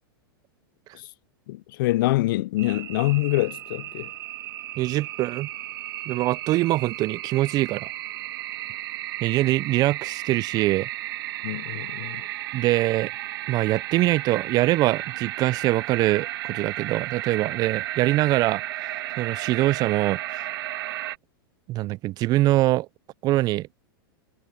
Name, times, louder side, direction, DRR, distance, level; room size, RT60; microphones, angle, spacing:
voice 1, 1.5-4.1 11.4-12.3, left 18 dB, 65° left, 0.4 m, -25 dB
sound 1, 2.6-21.2, right 15 dB, 70° right, 1.8 m, -34 dB
voice 2, 4.8-5.5 6.1-7.9 9.2-10.9 12.5-13.1 13.5-18.6 19.2-20.2 21.7-22.9 23.2-23.7, right 17 dB, 30° right, 0.3 m, -23 dB
hypercardioid pair, 125°, 12 cm